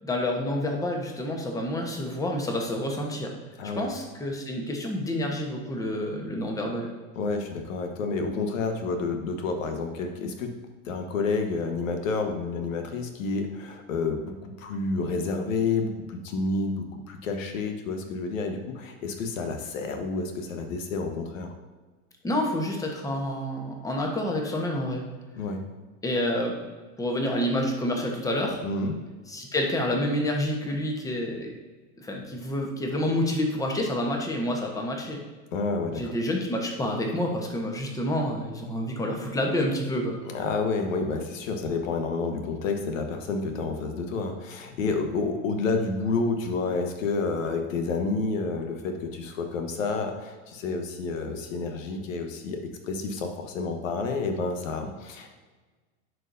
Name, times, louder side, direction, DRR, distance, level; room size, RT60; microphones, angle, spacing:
voice 1, 0.0-3.3 3.8-6.9 22.2-25.0 26.0-26.5 27.0-28.6 29.3-31.5 32.0-35.2 35.9-40.2, left 1 dB, 10° left, 1 dB, 1.0 m, -28 dB
voice 2, 7.1-10.6 10.8-21.5 25.4-25.6 28.6-28.9 35.5-36.1 40.2-55.3, left 4 dB, 85° left, 5 dB, 1.2 m, -29 dB
10.5 x 4.6 x 2.6 m, 1.3 s
supercardioid pair, 135°, 39 cm